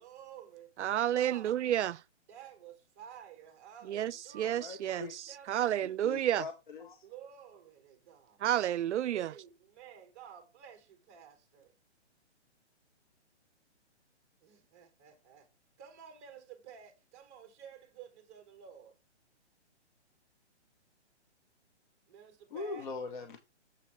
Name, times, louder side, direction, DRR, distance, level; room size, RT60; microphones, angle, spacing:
voice 1, 0.0-1.6 2.3-6.4 7.0-8.4 9.1-11.7 14.4-15.5 15.8-19.0 22.1-22.9, right 9 dB, 15° right, 0.8 m, -52 dB
voice 2, 0.8-2.0 3.9-6.5 8.4-9.3, right 11 dB, 75° right, 0.5 m, -31 dB
voice 3, 4.4-5.1 6.0-7.0 22.5-23.4, left 4 dB, 45° left, 1.0 m, -41 dB
7.3 x 4.1 x 4.5 m
hypercardioid pair, 165°, 35 cm